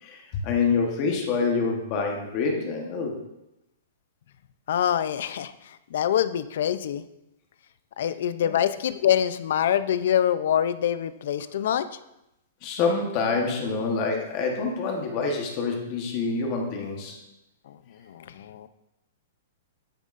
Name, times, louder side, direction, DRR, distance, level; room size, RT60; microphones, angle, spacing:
voice 1, 0.0-3.2 8.4-8.6 12.6-17.2, left 4 dB, 25° left, 1 dB, 1.1 m, -26 dB
voice 2, 4.7-7.0 8.0-11.9 17.7-17.8 18.1-18.7, left 10 dB, 50° left, 13 dB, 0.4 m, -25 dB
10.5 x 9.1 x 2.5 m, 0.88 s
hypercardioid pair, 180°, 0 cm